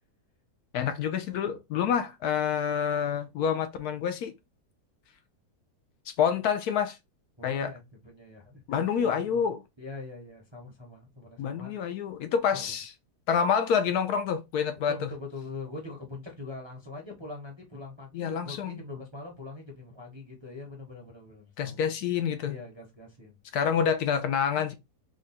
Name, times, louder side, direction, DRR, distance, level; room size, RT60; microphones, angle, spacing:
voice 1, 0.7-4.3 6.1-7.0 7.4-7.7 8.7-9.6 11.4-12.9 13.3-15.1 18.1-18.8 21.6-22.6 23.5-24.7, left 7 dB, 70° left, 1.0 m, -27 dB
voice 2, 7.4-8.6 9.0-9.5 9.8-11.7 12.6-12.7 14.9-21.8 22.4-23.4, left 3 dB, 25° right, 0.7 m, -43 dB
3.7 x 2.2 x 4.0 m
omnidirectional pair, 1.8 m